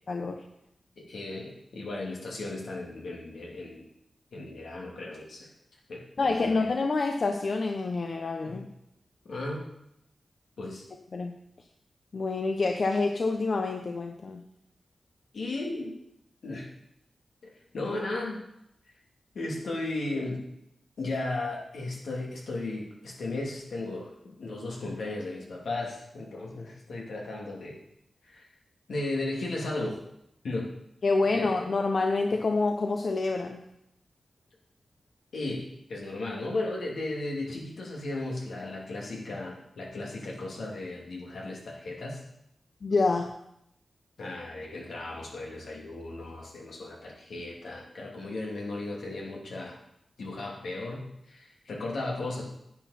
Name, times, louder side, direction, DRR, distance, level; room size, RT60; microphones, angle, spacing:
voice 1, 0.1-0.5 6.2-8.7 11.1-11.4 12.1-14.5 31.0-33.7 42.8-43.3, left 3 dB, 60° left, 4 dB, 0.8 m, -27 dB
voice 2, 1.0-3.8 4.3-5.5 5.9-6.7 8.4-8.6 9.3-9.7 10.6-10.8 15.3-16.0 16.4-16.7 17.4-18.4 19.3-20.5 21.0-27.8 28.2-28.4 28.9-30.0 30.4-30.7 31.3-31.7 32.3-32.4 35.3-42.2 44.2-49.8 50.2-52.4, left 2 dB, 85° left, -2 dB, 2.6 m, -35 dB
9.9 x 9.4 x 4.2 m, 0.78 s
cardioid pair, 75°, 0 cm